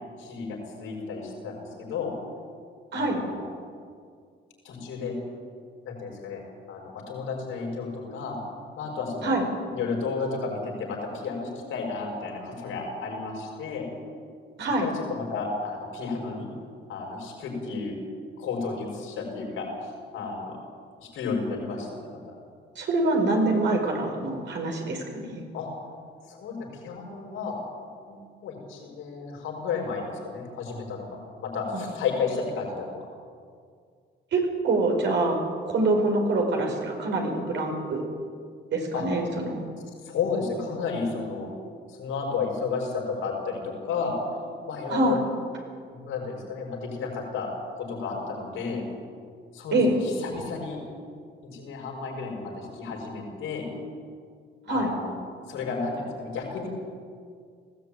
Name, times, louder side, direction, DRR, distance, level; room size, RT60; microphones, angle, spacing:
voice 1, 0.2-2.1 2.9-3.5 4.6-5.2 5.9-6.4 6.7-8.4 8.8-9.4 9.7-13.9 14.6-16.5 16.9-18.0 18.4-20.6 21.0-22.2 25.5-25.7 26.3-27.5 28.1-33.1 38.9-39.0 40.0-41.5 41.9-44.1 44.6-45.2 45.9-47.5 47.7-48.9 49.5-50.8 51.4-53.7 54.7-55.2 55.5-56.7, left 4 dB, 90° left, 0 dB, 5.9 m, -32 dB
voice 2, 22.7-25.4 34.3-35.4 35.6-38.0 38.7-39.6 44.9-45.2 49.7-49.9 54.7-54.9, right 2 dB, 65° right, 2 dB, 5.1 m, -25 dB
19.0 x 15.0 x 9.2 m, 2.1 s
cardioid pair, 90°, 20 cm